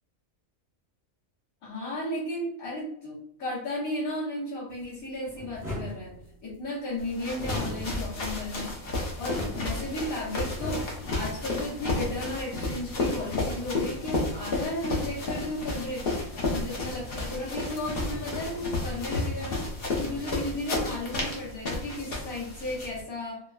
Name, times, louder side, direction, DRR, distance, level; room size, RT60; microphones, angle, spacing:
voice 1, 1.6-6.2 6.4-8.7 9.2-16.1 16.5-19.7 20.0-23.4, left 1 dB, 85° left, -9 dB, 1.4 m, -34 dB
sound 1, 4.7-6.6 7.3-8.4 8.8-11.3 11.9-12.0 12.9-14.5 15.9-17.3 17.6-19.3 19.5-20.7 21.0-21.2, left 1 dB, 5° right, 0.5 m, -41 dB
sound 2, 7.0-23.0, left 2 dB, 55° left, 0.8 m, -32 dB
3.7 x 2.1 x 2.3 m, 0.70 s
omnidirectional pair, 1.4 m